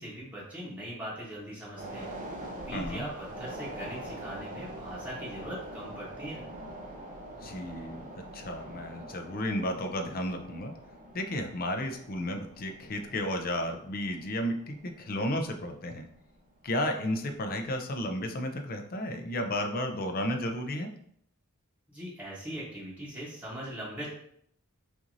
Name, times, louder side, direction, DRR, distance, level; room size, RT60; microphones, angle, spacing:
voice 1, 0.0-2.1 2.6-6.4 21.9-24.1, right 1 dB, 5° right, -7 dB, 1.0 m, -40 dB
sound 1, 1.8-16.3 16.7-16.8, right 1 dB, 35° right, 0.6 m, -44 dB
voice 2, 2.7-3.1 7.4-10.7 11.1-16.1 16.6-20.9, left 1 dB, 40° left, 4 dB, 0.6 m, -33 dB
5.9 x 2.6 x 2.6 m, 0.67 s
head